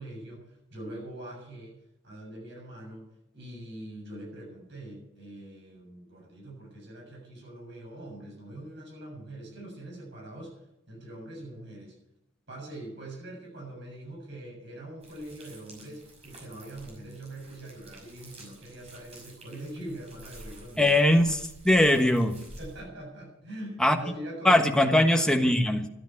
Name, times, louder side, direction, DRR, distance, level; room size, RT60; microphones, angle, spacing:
voice 1, 0.0-1.8 2.0-3.1 3.3-10.6 10.9-11.9 12.5-20.9 22.6-25.5, right 1 dB, 60° right, -2 dB, 7.3 m, -43 dB
sound 1, 15.0-22.8, right 1 dB, 30° right, 6.0 m, -50 dB
voice 2, 20.8-22.4 23.8-24.0 24.4-25.9, left 1 dB, 5° left, 4 dB, 1.4 m, -21 dB
13.5 x 10.0 x 8.3 m, 0.85 s
head